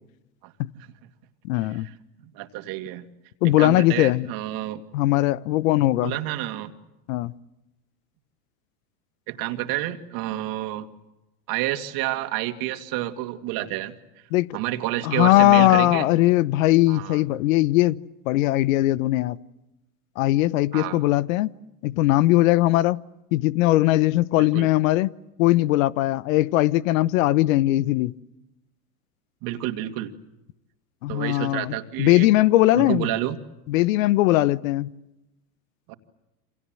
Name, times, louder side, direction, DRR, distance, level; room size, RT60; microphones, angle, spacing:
voice 1, 0.4-0.9 2.2-3.1 3.4-4.8 6.0-6.7 9.3-10.9 11.5-13.9 14.5-16.1 16.9-17.2 20.7-21.0 24.4-24.7 29.4-30.1 31.1-32.3 32.7-33.4 35.9-36.0, right 15 dB, 50° right, 2.4 m, -29 dB
voice 2, 1.4-1.9 3.4-4.3 4.9-6.2 7.1-7.3 14.3-14.6 15.0-18.0 18.3-19.4 20.2-21.5 21.8-23.0 23.3-25.1 25.4-28.1 31.0-33.1 33.7-34.9, left 16 dB, 60° left, 1.0 m, -20 dB
28.5 x 26.5 x 7.8 m
hypercardioid pair, 105°, 45 cm